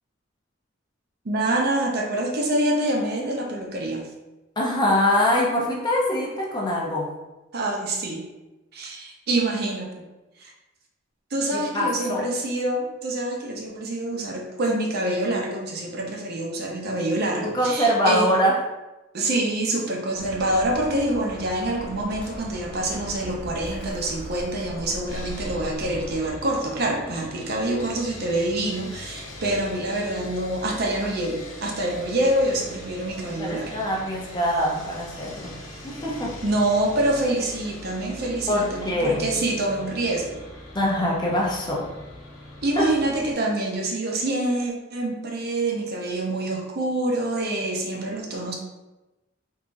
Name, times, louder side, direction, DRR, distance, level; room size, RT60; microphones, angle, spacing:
voice 1, 1.2-4.1 7.5-8.2 8.7-10.0 10.4-10.5 11.3-18.3 19.1-33.7 36.4-40.4 42.6-48.5, right 1 dB, 55° right, 0 dB, 0.6 m, -26 dB
voice 2, 4.6-7.1 11.5-12.2 17.4-18.6 33.4-35.5 35.8-36.3 38.5-39.2 40.7-41.9 42.8-42.9, left 1 dB, 20° left, -3 dB, 0.6 m, -23 dB
Bird, 20.1-26.3, equal, 5° left, 1.0 m, -38 dB
Sawing, 25.1-43.3, left 1 dB, 85° left, 0.9 m, -41 dB
3.6 x 2.8 x 2.5 m, 1.0 s
head